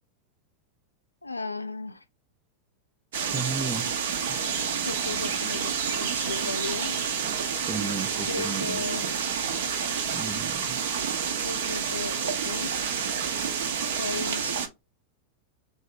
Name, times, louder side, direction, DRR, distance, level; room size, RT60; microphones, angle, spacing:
voice 1, 1.2-2.0 4.8-7.0 8.3-9.1 11.4-12.8 14.0-14.6, left 3 dB, 85° left, 0.4 m, -35 dB
sound 1, 3.1-14.7, right 7 dB, 60° right, 0.7 m, -29 dB
voice 2, 3.3-3.9 4.3-4.4 7.6-8.8 10.1-10.8, right 4 dB, 15° right, 0.4 m, -34 dB
3.5 x 2.7 x 3.3 m
figure-of-eight pair, 90°, 0 cm